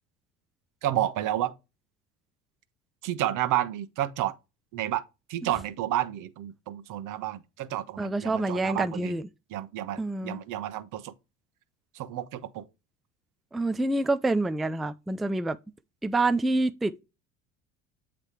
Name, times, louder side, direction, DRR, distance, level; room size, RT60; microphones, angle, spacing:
voice 1, 0.8-1.5 3.0-4.3 4.7-5.0 5.3-9.2 9.5-11.1 11.9-12.6, right 13 dB, 60° right, 1.0 m, -30 dB
voice 2, 8.0-9.2 10.0-10.4 13.5-15.6 16.0-17.0, right 2 dB, ahead, 0.3 m, -27 dB
8.1 x 3.2 x 4.4 m
supercardioid pair, 85°, 36 cm